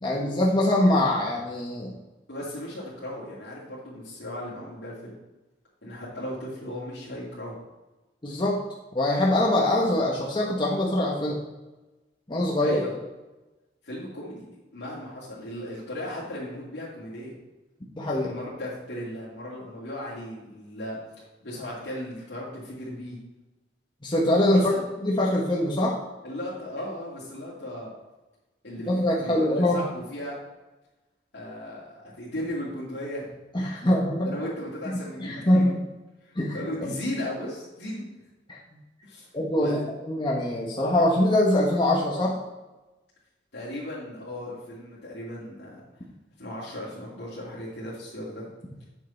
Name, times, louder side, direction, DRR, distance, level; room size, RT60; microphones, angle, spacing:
voice 1, 0.0-1.9 8.2-8.6 8.9-11.4 12.3-12.8 18.0-18.3 24.0-24.7 25.0-26.0 28.9-29.8 33.5-34.4 35.2-35.8 36.4-36.6 38.5-38.6 39.3-39.8 40.0-42.4, left 1 dB, 25° left, -3 dB, 1.2 m, -23 dB
voice 2, 2.3-5.1 5.8-7.6 12.6-12.9 13.8-14.5 14.7-17.3 18.2-21.0 21.4-23.2 24.5-24.8 26.2-27.9 28.6-30.4 31.3-33.3 34.2-35.7 36.2-38.1 39.0-39.3 39.5-39.9 43.5-45.8 46.4-48.5, left 1 dB, 80° left, -9 dB, 2.6 m, -36 dB
8.6 x 6.4 x 4.4 m, 1.1 s
head